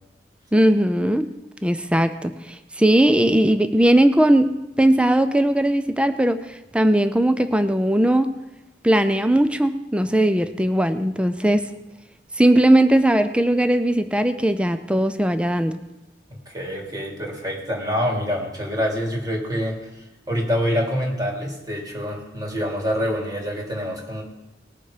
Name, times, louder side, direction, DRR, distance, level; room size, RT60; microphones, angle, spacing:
voice 1, 0.5-1.3 1.6-4.5 4.8-8.3 8.8-11.7 12.4-15.8, right 1 dB, 5° right, 10 dB, 0.5 m, -19 dB
voice 2, 16.3-19.9 20.3-24.2, equal, 25° right, -1 dB, 2.8 m, -26 dB
19.5 x 6.9 x 5.1 m, 1.0 s
head